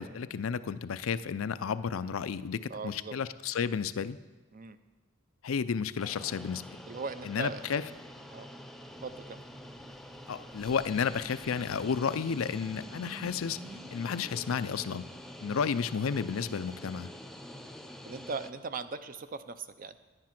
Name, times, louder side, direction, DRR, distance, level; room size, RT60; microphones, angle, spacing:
voice 1, 0.0-4.2 5.4-6.8 7.2-7.8 10.3-13.6 13.9-15.0 15.4-17.1, left 6 dB, 90° left, 14 dB, 0.5 m, -32 dB
voice 2, 2.7-3.1 4.5-4.8 6.9-7.6 8.3-8.5 9.0-9.4 15.4-15.5 18.0-20.0, right 4 dB, 45° right, 11 dB, 0.6 m, -39 dB
sound 1, 6.0-18.5, equal, ahead, 0.6 m, -47 dB
sound 2, 8.8-15.3, right 1 dB, 75° right, 2.0 m, -53 dB
10.5 x 9.7 x 5.9 m, 1.2 s
head